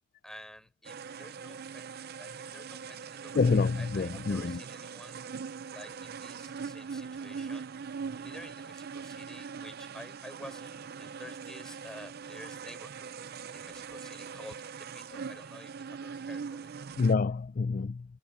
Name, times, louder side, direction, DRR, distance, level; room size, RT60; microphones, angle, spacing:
voice 1, 0.2-1.9 2.2-5.2 5.7-7.7 8.1-13.1 13.5-16.7, equal, 5° left, 7.3 m, -50 dB
sound 1, 0.8-17.1, right 6 dB, 55° right, 0.5 m, -42 dB
voice 2, 3.3-4.6 17.0-18.0, left 4 dB, 45° left, 0.4 m, -27 dB
head